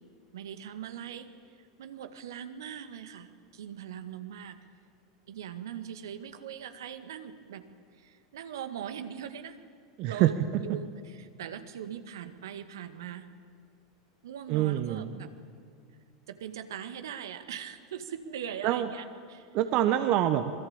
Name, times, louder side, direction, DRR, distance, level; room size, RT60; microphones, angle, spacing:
voice 1, 0.3-4.6 5.3-7.6 8.0-9.6 10.0-13.3 14.2-15.3 16.3-19.5, right 9 dB, 70° right, 9 dB, 1.9 m, -41 dB
voice 2, 10.0-10.6 14.5-15.3 18.6-18.9 19.5-20.5, right 12 dB, 50° right, 9 dB, 1.3 m, -26 dB
27.0 x 21.0 x 8.9 m, 2.1 s
figure-of-eight pair, 85°, 2 cm